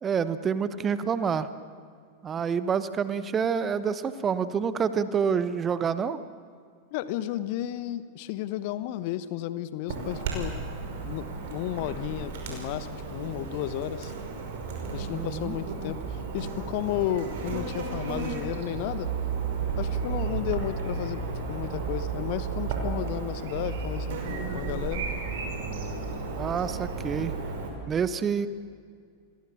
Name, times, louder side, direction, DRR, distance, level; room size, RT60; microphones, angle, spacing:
voice 1, 0.0-1.5 2.2-6.2 15.1-15.6 26.4-27.3 27.9-28.5, right 6 dB, 25° right, 13 dB, 1.2 m, -27 dB
voice 2, 6.9-10.6 11.0-14.1 14.9-19.1 19.8-21.2 21.5-25.1, left 13 dB, 45° left, 14 dB, 1.1 m, -33 dB
Chirp tweet / Buzz, 9.9-27.7, right 5 dB, 55° right, 5.7 m, -33 dB
29.5 x 22.0 x 7.2 m, 2.1 s
figure-of-eight pair, 90°, 0 cm